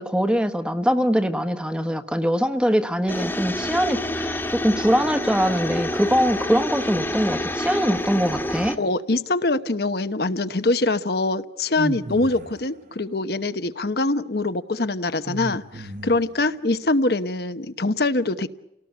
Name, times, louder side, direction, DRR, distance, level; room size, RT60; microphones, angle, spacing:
voice 1, 0.0-8.8, equal, 5° right, 7 dB, 1.2 m, -22 dB
sound 1, 3.1-8.8, left 1 dB, 10° left, 1.4 m, -28 dB
voice 2, 8.8-18.5, left 2 dB, 65° left, 10 dB, 1.0 m, -24 dB
sound 2, 11.8-12.7 15.2-16.4, right 1 dB, 45° right, 1.3 m, -34 dB
30.0 x 18.5 x 8.1 m, 0.85 s
head